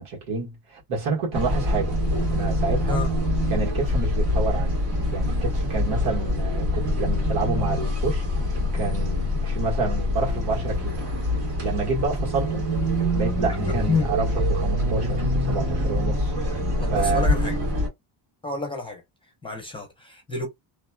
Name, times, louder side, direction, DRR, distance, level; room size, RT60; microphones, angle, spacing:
voice 1, 0.0-2.0 2.3-3.0 3.5-4.8 5.1-11.0 11.6-12.7 13.1-16.3 16.9-17.3, right 4 dB, 85° right, 1.8 m, -29 dB
sound 1, 1.3-17.9, left 1 dB, 60° right, 1.7 m, -25 dB
voice 2, 16.8-17.6 18.4-19.0 19.4-20.5, left 3 dB, 10° left, 0.8 m, -28 dB
2.9 x 2.9 x 2.3 m
cardioid pair, 180°, 50 cm